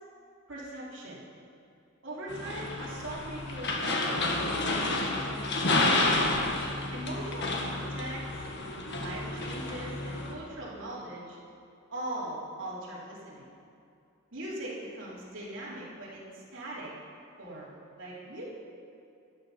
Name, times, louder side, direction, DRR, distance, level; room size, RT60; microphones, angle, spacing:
voice 1, 0.5-1.2 2.0-6.0 6.9-8.4 9.0-11.4 11.9-13.5 14.3-16.9 17.4-18.4, right 1 dB, 60° right, -7 dB, 3.7 m, -40 dB
sound 1, 2.3-10.3, left 2 dB, 55° left, 1.6 m, -30 dB
13.0 x 11.0 x 5.8 m, 2.6 s
head